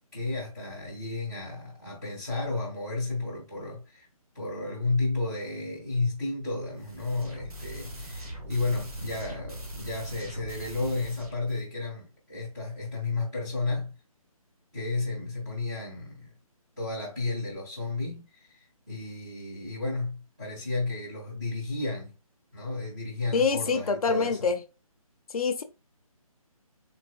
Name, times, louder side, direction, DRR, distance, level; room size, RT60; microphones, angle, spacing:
voice 1, 0.1-4.1 4.3-13.9 14.7-16.3 16.8-22.1 22.5-24.5, left 3 dB, 10° right, 0.4 m, -32 dB
sound 1, 6.8-11.6, right 1 dB, 80° right, 1.4 m, -40 dB
voice 2, 23.3-24.6 25.3-25.6, left 5 dB, 75° left, 0.5 m, -25 dB
3.9 x 3.0 x 2.3 m
hypercardioid pair, 170°, 19 cm